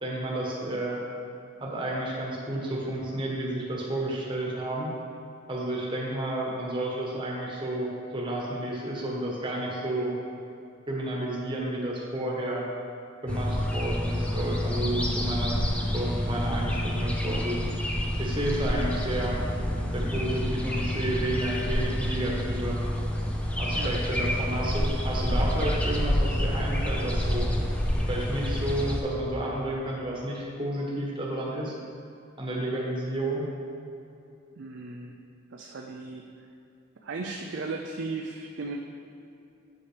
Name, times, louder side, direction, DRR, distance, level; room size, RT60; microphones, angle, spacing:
voice 1, 0.0-1.0 1.6-4.9 5.5-10.1 10.9-12.6 13.2-15.6 15.9-17.6 18.2-19.4 19.9-22.8 23.6-27.5 28.1-31.7 32.4-33.5, right 1 dB, 25° right, -4 dB, 1.1 m, -31 dB
sound 1, 13.3-29.0, equal, 5° left, 0.5 m, -28 dB
voice 2, 34.6-35.2 35.5-36.3 37.0-38.8, right 3 dB, 55° right, 1 dB, 0.4 m, -36 dB
8.2 x 7.1 x 3.4 m, 2.6 s
head